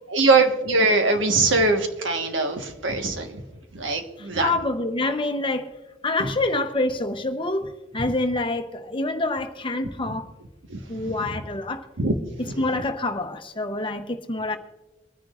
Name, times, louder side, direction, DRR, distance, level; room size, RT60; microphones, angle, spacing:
voice 1, 0.1-3.3 3.7-4.5 10.7-10.8 12.0-12.1, right 3 dB, 90° right, 5 dB, 1.4 m, -21 dB
voice 2, 4.2-5.7 6.0-10.3 10.9-11.8 12.6-14.6, left 2 dB, 25° left, 7 dB, 0.9 m, -26 dB
24.0 x 10.0 x 2.5 m, 1.1 s
head